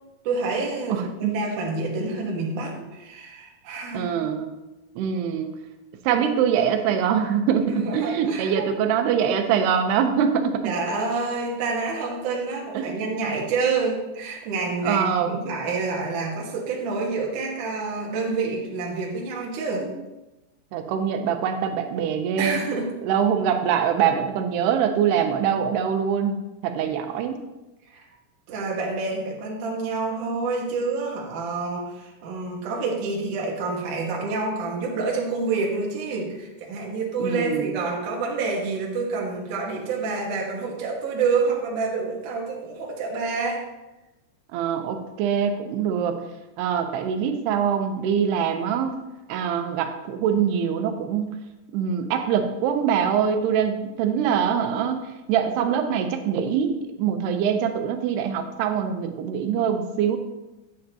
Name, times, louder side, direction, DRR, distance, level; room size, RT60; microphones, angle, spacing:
voice 1, 0.2-4.1 7.7-8.8 10.6-19.9 22.4-22.9 27.9-28.0 28.5-43.6, right 4 dB, 60° right, -2 dB, 2.7 m, -28 dB
voice 2, 0.9-1.3 3.9-4.5 5.0-5.5 6.0-10.7 12.7-13.4 14.8-15.4 19.8-19.9 20.7-22.6 23.0-26.4 26.6-27.4 37.2-37.8 44.5-46.2 46.6-49.0 49.3-51.4 51.7-55.0 55.3-60.2, right 8 dB, 85° right, 6 dB, 2.9 m, -24 dB
10.5 x 9.1 x 2.9 m, 1.0 s
omnidirectional pair, 4.6 m